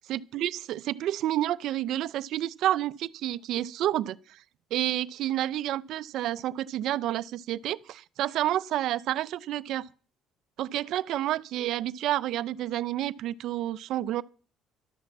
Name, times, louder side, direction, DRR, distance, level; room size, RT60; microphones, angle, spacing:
voice 1, 0.1-4.4 4.7-9.9 10.6-14.2, right 13 dB, 55° right, 0.5 m, -29 dB
12.5 x 8.6 x 7.2 m
cardioid pair, 165°, 0 cm